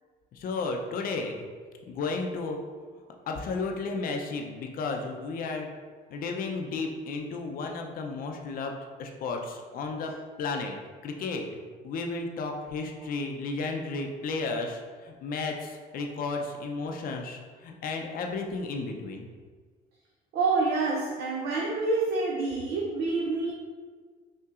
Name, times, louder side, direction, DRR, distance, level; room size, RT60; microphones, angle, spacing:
voice 1, 0.3-1.4 1.9-2.6 3.3-5.7 6.1-10.1 10.4-10.8 11.0-11.5 11.8-19.3, left 3 dB, 60° left, 2 dB, 0.5 m, -33 dB
voice 2, 20.3-23.5, right 3 dB, 75° right, -2 dB, 0.6 m, -27 dB
5.4 x 2.9 x 2.4 m, 1.5 s
cardioid pair, 110°, 17 cm